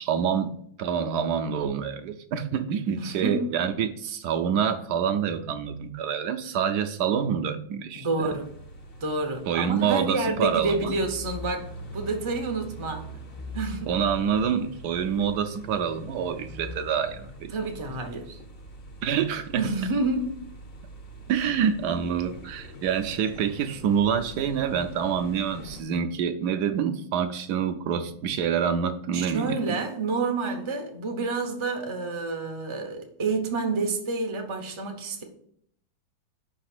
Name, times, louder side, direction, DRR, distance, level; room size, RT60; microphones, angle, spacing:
voice 1, 0.0-8.3 9.5-11.0 13.9-17.7 19.0-19.7 21.3-29.8, right 7 dB, 70° right, 8 dB, 1.0 m, -27 dB
voice 2, 3.0-3.5 8.0-8.5 9.0-11.6 11.9-13.1 13.5-13.9 17.5-18.4 19.5-20.4 29.1-35.2, right 3 dB, 35° right, 3 dB, 0.4 m, -29 dB
sound 1, 8.2-25.8, equal, 45° left, 0.7 m, -43 dB
5.6 x 3.9 x 6.0 m, 0.69 s
omnidirectional pair, 2.1 m